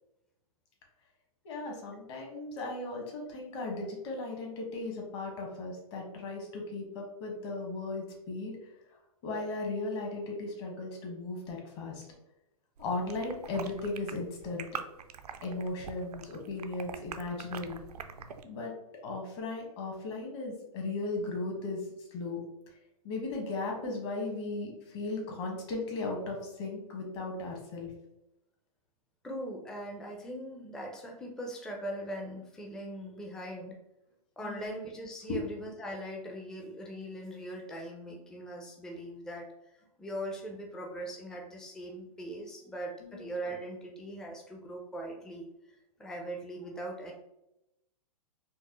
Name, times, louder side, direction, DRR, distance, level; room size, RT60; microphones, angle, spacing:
voice 1, 1.4-8.5 9.2-12.0 12.8-14.7 15.4-17.8 18.5-18.7 19.0-21.8 22.1-22.4 23.0-27.9 34.4-34.7 35.3-35.4 43.0-43.3, left 3 dB, 45° left, 0 dB, 1.3 m, -36 dB
sound 1, 12.8-18.4, right 7 dB, 85° right, 0.4 m, -44 dB
voice 2, 29.2-33.8 34.4-39.5 40.0-45.5 46.0-47.1, right 1 dB, 5° left, -1 dB, 0.4 m, -40 dB
4.5 x 2.1 x 3.0 m, 0.87 s
hypercardioid pair, 125°, 19 cm